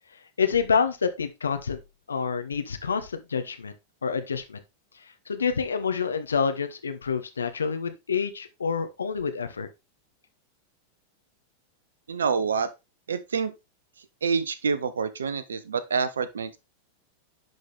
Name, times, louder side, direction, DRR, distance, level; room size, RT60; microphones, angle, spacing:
voice 1, 0.4-1.8 2.1-3.7 4.0-4.6 5.3-9.7, left 6 dB, 70° left, 1.0 m, -27 dB
voice 2, 12.1-12.7 13.1-13.5 14.2-16.6, right 5 dB, 70° right, 0.7 m, -27 dB
11.0 x 4.0 x 3.5 m
figure-of-eight pair, 90°, 0 cm